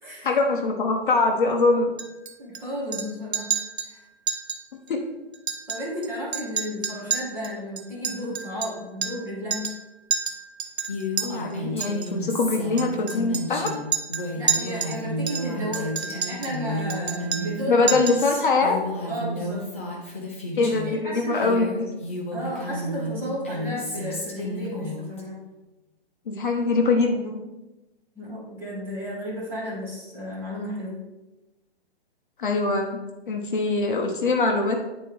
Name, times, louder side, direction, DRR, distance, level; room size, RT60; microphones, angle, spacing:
voice 1, 0.2-1.9 4.9-5.0 11.2-13.7 17.7-18.8 20.6-21.8 26.3-27.5 32.4-33.0 33.3-34.8, left 3 dB, 50° left, 3 dB, 1.0 m, -23 dB
Chink clink, 2.0-2.6 2.9-3.1 3.3-3.9 4.3-4.6 4.9-5.0 5.3-6.1 6.3-9.3 9.5-9.8 10.1-11.3 11.8-12.1 12.8-15.0 15.3-16.6 16.9-17.6 17.9-18.3, right 7 dB, 75° right, 1.0 m, -29 dB
voice 2, 2.4-3.5 3.8-4.0 5.7-9.7 14.3-17.8 19.1-19.6 20.5-21.7 22.3-25.4 28.1-31.0, equal, 5° right, -8 dB, 1.4 m, -33 dB
Female speech woman speaking, 10.9-21.0 21.3-25.2, left 1 dB, 15° left, 0.4 m, -32 dB
9.8 x 4.4 x 3.4 m, 1.0 s
hypercardioid pair, 170°, 32 cm